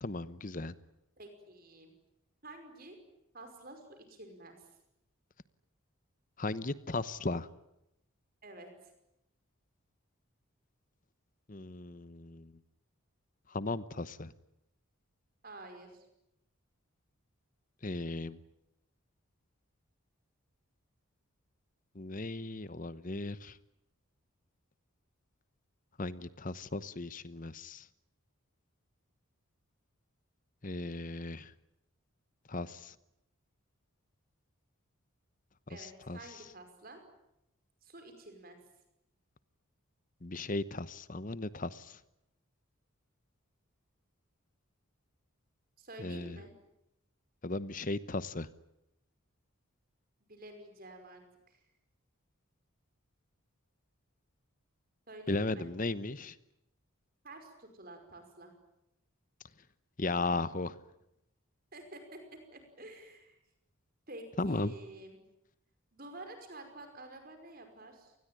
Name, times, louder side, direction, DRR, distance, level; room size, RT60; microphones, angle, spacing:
voice 1, 0.0-0.7 6.4-7.5 11.5-12.5 13.5-14.3 17.8-18.4 21.9-23.6 26.0-27.9 30.6-31.5 32.5-32.9 35.8-36.2 40.2-42.0 46.0-46.4 47.4-48.5 55.3-56.3 60.0-60.8 64.4-64.7, left 2 dB, 35° left, 15 dB, 0.9 m, -36 dB
voice 2, 1.2-1.9 2.4-3.0 3.3-4.7 8.4-8.9 15.4-16.1 35.7-37.0 37.8-38.6 45.8-46.5 50.2-51.6 55.1-55.7 57.2-58.5 61.7-63.4 64.1-65.2 65.9-68.2, right 2 dB, 40° right, 6 dB, 5.4 m, -50 dB
27.5 x 20.5 x 9.2 m, 0.84 s
head